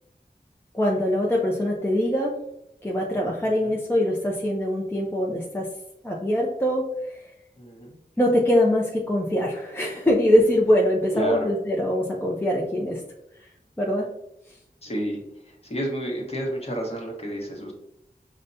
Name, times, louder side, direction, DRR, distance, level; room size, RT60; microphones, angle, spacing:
voice 1, 0.7-2.3 2.8-5.7 6.0-6.8 7.1-7.2 8.2-13.0 13.8-14.1, left 1 dB, 15° left, -2 dB, 0.6 m, -23 dB
voice 2, 3.4-3.7 7.6-7.9 11.1-11.5 14.8-17.7, equal, 40° left, -1 dB, 1.1 m, -30 dB
5.0 x 2.2 x 2.6 m, 0.81 s
wide cardioid pair, 65°, 16 cm